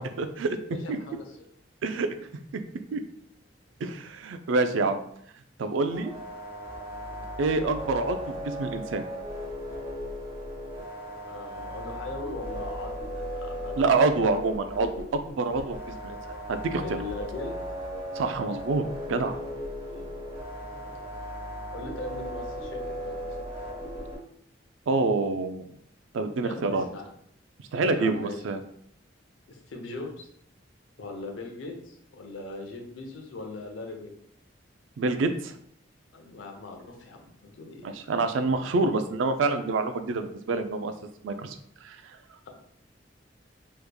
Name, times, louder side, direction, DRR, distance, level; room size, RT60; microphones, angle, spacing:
voice 1, 0.0-0.6 0.9-1.0 1.8-2.1 2.5-2.6 2.9-3.0 3.8-5.0 5.6-6.1 7.4-9.0 13.8-15.8 16.0-16.2 16.5-17.0 18.2-19.4 24.9-25.7 26.1-26.8 27.7-28.6 35.0-35.5 37.8-40.9 41.2-41.5 41.8-42.0, right 3 dB, 80° right, 8 dB, 0.4 m, -27 dB
voice 2, 0.7-1.4 11.3-13.8 14.2-14.3 16.8-17.5 19.9-20.1 20.7-20.8 21.7-23.4 26.4-27.1 27.9-28.4 29.5-30.3 31.0-34.1 36.1-37.9, left 2 dB, 85° left, 2 dB, 0.7 m, -40 dB
sound 1, 5.9-24.2, equal, 30° right, 1.0 m, -37 dB
3.4 x 3.1 x 2.2 m, 0.67 s
head